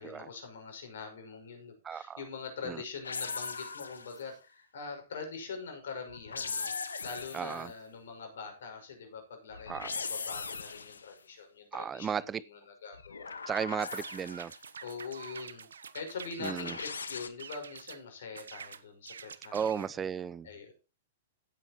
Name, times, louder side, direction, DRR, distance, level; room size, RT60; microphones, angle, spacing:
voice 1, 0.0-13.3 14.8-15.7 15.9-20.1 20.4-20.7, left 5 dB, 70° left, 5.7 m, -44 dB
voice 2, 1.8-2.2 2.7-2.8 7.3-7.7 9.7-9.9 11.7-12.4 13.5-14.5 16.4-16.7 19.5-20.5, right 7 dB, 20° right, 0.5 m, -34 dB
sound 1, 3.0-4.3 6.1-7.7 9.5-11.1 12.9-14.6 16.4-17.3, left 5 dB, 90° left, 1.4 m, -39 dB
sound 2, 13.8-16.9 17.4-18.0 18.3-19.9, right 6 dB, 80° right, 1.0 m, -47 dB
16.0 x 9.1 x 3.0 m
hypercardioid pair, 115°, 0 cm